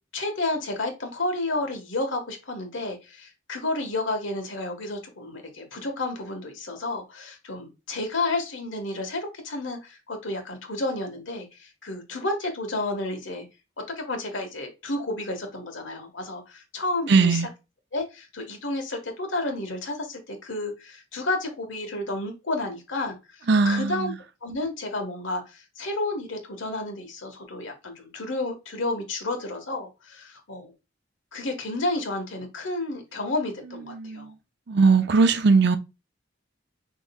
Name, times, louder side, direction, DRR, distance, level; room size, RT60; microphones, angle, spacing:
voice 1, 0.1-13.4 14.0-17.4 17.9-24.1 24.4-30.7 31.3-34.3, left 2 dB, 80° left, 1.4 m, -31 dB
voice 2, 17.1-17.5 23.5-24.1 33.9-34.3 34.7-35.8, right 4 dB, 60° right, 0.6 m, -19 dB
6.3 x 3.1 x 2.3 m
head